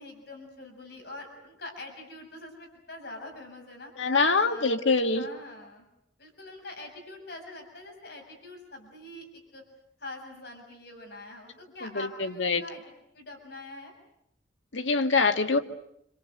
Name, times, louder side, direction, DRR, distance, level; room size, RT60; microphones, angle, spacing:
voice 1, 0.0-4.7 5.0-5.8 6.2-9.6 10.0-12.8 13.1-13.9, left 2 dB, 60° left, 2 dB, 7.0 m, -44 dB
voice 2, 4.0-5.3 11.8-12.6 14.7-15.6, left 4 dB, 80° left, 6 dB, 2.0 m, -24 dB
27.5 x 26.5 x 8.1 m, 0.77 s
head